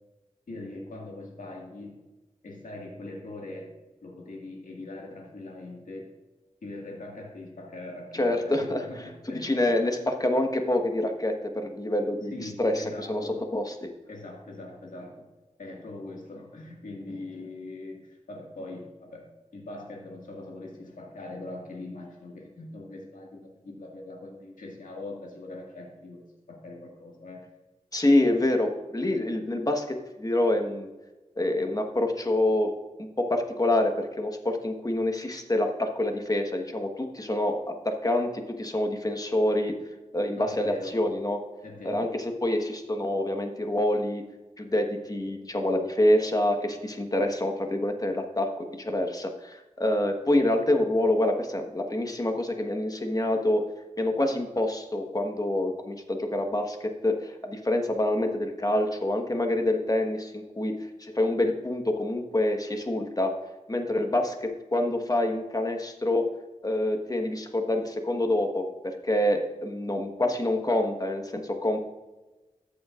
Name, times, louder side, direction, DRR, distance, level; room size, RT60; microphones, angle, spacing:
voice 1, 0.5-2.0 2.4-3.7 4.0-6.1 6.6-9.8 12.2-13.4 14.1-15.3 15.6-27.4 40.4-41.0 41.6-42.1, left 2 dB, 90° left, -1 dB, 1.9 m, -41 dB
voice 2, 8.1-12.3 12.6-13.7 27.9-30.9 31.4-32.7 33.0-38.3 38.6-39.7 40.1-41.4 41.8-44.2 44.6-53.6 54.0-60.7 61.0-63.3 63.7-66.3 66.6-71.8, left 1 dB, 30° left, 4 dB, 1.3 m, -26 dB
13.5 x 7.2 x 2.5 m, 1.1 s
wide cardioid pair, 60°, 13 cm